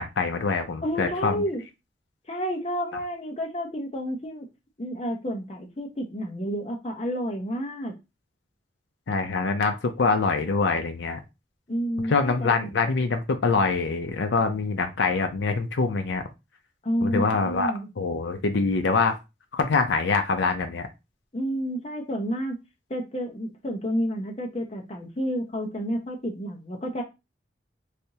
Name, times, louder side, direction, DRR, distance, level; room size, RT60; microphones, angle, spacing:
voice 1, 0.0-1.4 9.1-11.2 12.1-16.2 17.0-19.2 19.5-20.9, left 4 dB, 80° left, 6 dB, 0.5 m, -24 dB
voice 2, 0.8-1.6 2.3-4.5 4.8-7.9 11.7-12.7 16.8-17.9 21.3-22.6 22.9-27.0, equal, 35° left, 2 dB, 0.7 m, -30 dB
3.3 x 2.7 x 2.8 m, 0.24 s
head